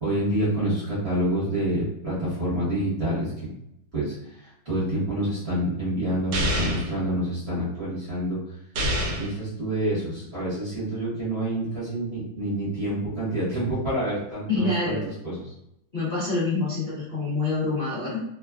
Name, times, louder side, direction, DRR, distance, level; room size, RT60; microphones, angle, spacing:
voice 1, 0.0-3.5 3.9-8.4 9.2-15.0 15.2-15.4, right 1 dB, 40° right, -9 dB, 1.1 m, -27 dB
sound 1, 6.3-6.9 8.8-9.4, equal, 75° right, 1.0 m, -26 dB
voice 2, 14.5-15.1 15.9-18.2, left 3 dB, 70° left, -8 dB, 0.5 m, -26 dB
3.1 x 2.3 x 2.3 m, 0.81 s
omnidirectional pair, 2.2 m